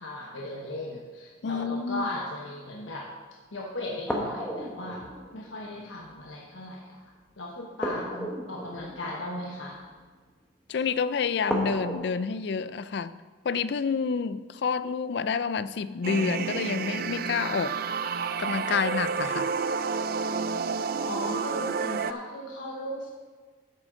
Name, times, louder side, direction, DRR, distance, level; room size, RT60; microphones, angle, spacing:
voice 1, 0.0-3.1 3.5-7.0 7.4-9.8 21.1-23.1, left 1 dB, 85° left, -1 dB, 1.1 m, -37 dB
voice 2, 1.4-2.1 10.7-13.2 13.4-17.8 18.4-19.5, left 5 dB, 60° left, 15 dB, 0.4 m, -28 dB
sound 1, 4.0-6.2 7.8-10.0 11.5-11.9, equal, 5° left, 1.3 m, -34 dB
sound 2, 16.0-22.1, right 5 dB, 50° right, 0.4 m, -30 dB
11.5 x 8.6 x 3.8 m, 1.5 s
head